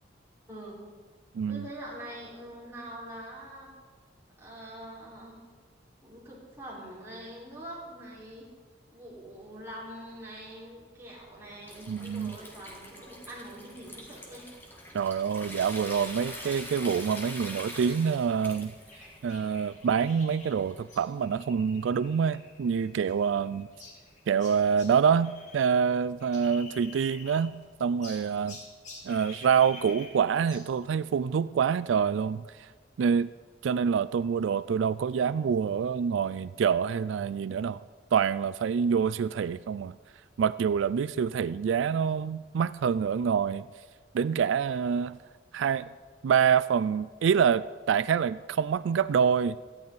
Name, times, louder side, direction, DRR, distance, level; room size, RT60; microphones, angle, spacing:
voice 1, 0.5-0.8 1.5-3.7 4.4-5.4 6.0-8.5 8.9-14.5 28.4-28.5, right 1 dB, 15° right, -7 dB, 4.6 m, -44 dB
voice 2, 1.3-1.7 11.9-12.4 14.9-18.7 19.2-23.7 24.3-28.6 29.0-32.7 33.0-33.3 33.6-37.8 38.1-39.9 40.4-43.7 44.1-45.2 45.5-45.9 46.2-49.6, right 7 dB, 85° right, 16 dB, 0.3 m, -26 dB
Water tap faucet / Sink (filling or washing) / Trickle dribble, 11.2-21.1, left 1 dB, 10° left, 1.7 m, -45 dB
sound 1, 18.9-25.7 26.0-27.6 28.0-30.7, left 3 dB, 40° left, 2.6 m, -49 dB
18.0 x 14.0 x 4.1 m, 1.5 s
head